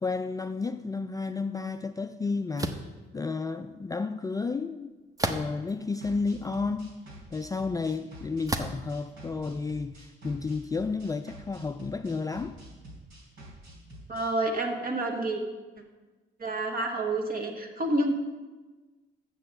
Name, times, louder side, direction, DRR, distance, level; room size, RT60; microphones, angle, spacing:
voice 1, 0.0-2.8 3.1-4.9 5.2-6.9 7.3-12.6, left 4 dB, 20° left, 0.3 m, -32 dB
sound 1, 2.6-2.9 5.2-5.7 6.4-6.5 8.5-8.9, right 2 dB, 15° right, 0.8 m, -31 dB
sound 2, 6.0-14.3, right 1 dB, 85° right, 3.7 m, -48 dB
voice 2, 14.1-15.4 16.4-18.1, right 2 dB, 45° right, 1.8 m, -29 dB
6.9 x 6.8 x 7.6 m
cardioid pair, 90°, 20 cm